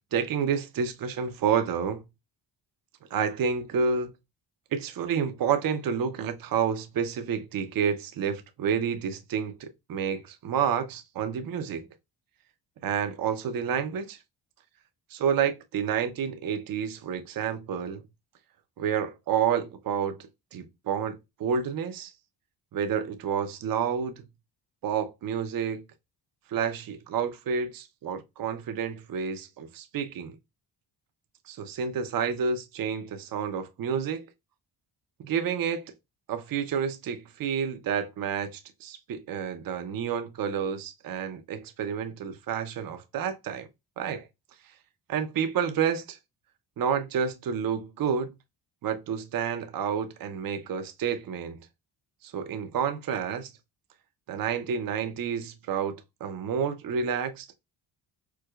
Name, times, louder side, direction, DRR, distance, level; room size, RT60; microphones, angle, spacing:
voice 1, 0.0-2.0 3.1-4.1 4.7-11.9 12.8-14.2 15.1-18.0 18.8-20.2 20.5-22.1 22.7-24.2 24.8-25.8 26.5-30.4 31.5-34.3 35.2-35.9 36.3-43.7 44.0-44.3 45.1-46.2 46.8-48.3 48.8-51.7 52.2-53.5 54.3-57.5, right 7 dB, 45° right, 0.6 m, -29 dB
4.6 x 2.1 x 2.3 m
cardioid pair, 105°, 47 cm